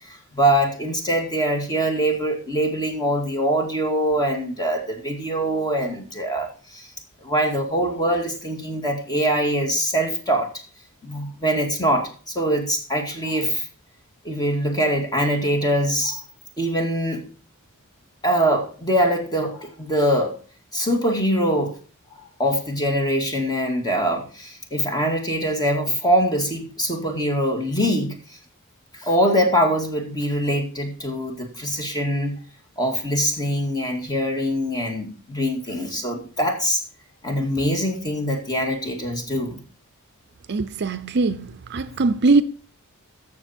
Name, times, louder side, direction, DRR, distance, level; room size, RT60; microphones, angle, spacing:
voice 1, 0.1-6.9 7.2-10.5 11.0-13.7 14.2-16.2 16.6-17.2 18.2-20.3 20.7-21.8 22.4-28.2 28.9-32.4 32.8-36.8 37.2-39.6, equal, 20° left, 2.2 m, -23 dB
voice 2, 40.5-42.4, right 3 dB, 50° right, 0.6 m, -21 dB
14.0 x 6.9 x 4.4 m
head